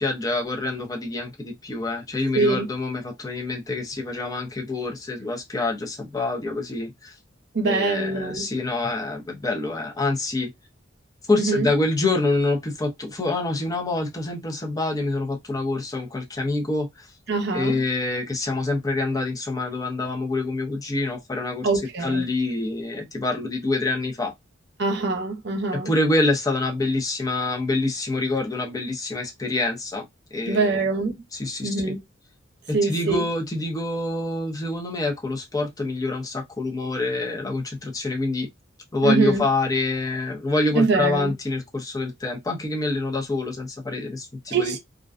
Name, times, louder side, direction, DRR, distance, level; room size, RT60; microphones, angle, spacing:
voice 1, 0.0-7.1 7.6-10.5 11.3-17.1 17.5-21.7 22.0-24.3 25.8-30.1 30.3-30.8 31.3-32.0 32.8-38.5 38.9-44.7, left 2 dB, 20° left, 0.6 m, -26 dB
voice 2, 2.3-2.7 7.5-8.5 11.4-11.7 17.3-17.8 21.6-22.3 24.8-25.9 30.5-31.1 31.6-32.0 32.7-33.2 39.0-39.4 40.7-41.3 44.5-44.8, right 3 dB, 55° right, 0.7 m, -23 dB
2.4 x 2.2 x 2.4 m
head